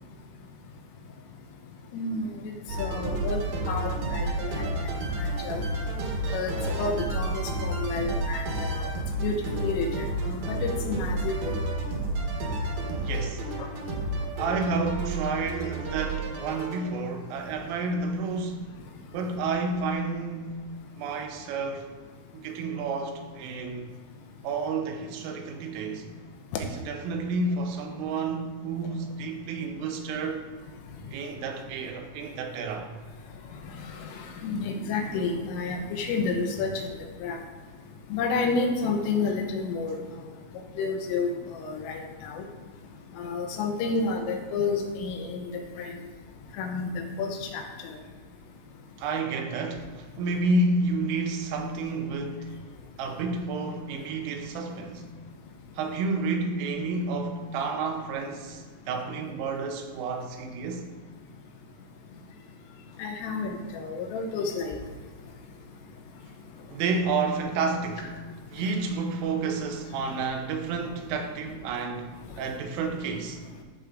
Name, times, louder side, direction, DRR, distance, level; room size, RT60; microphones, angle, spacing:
voice 1, 1.9-2.5 2.8-4.5 5.2-5.6 6.3-8.9 9.2-9.9 10.2-11.3 34.0-34.1 34.4-36.9 37.2-37.4 38.1-40.0 40.8-41.3 41.6-42.5 43.2-45.5 45.8-45.9 46.6-47.6 63.0-64.8, left 4 dB, 85° left, 2 dB, 3.5 m, -30 dB
sound 1, 2.7-16.8, right 2 dB, 65° right, 2.7 m, -31 dB
voice 2, 12.9-13.4 14.4-18.7 19.1-20.6 21.0-21.9 22.3-23.9 24.4-26.1 26.6-30.4 31.1-32.9 49.0-52.5 53.0-55.1 55.8-60.9 66.7-68.2 68.5-73.4, right 3 dB, 80° right, 4 dB, 3.5 m, -30 dB
13.5 x 4.8 x 3.8 m, 1.4 s
omnidirectional pair, 5.8 m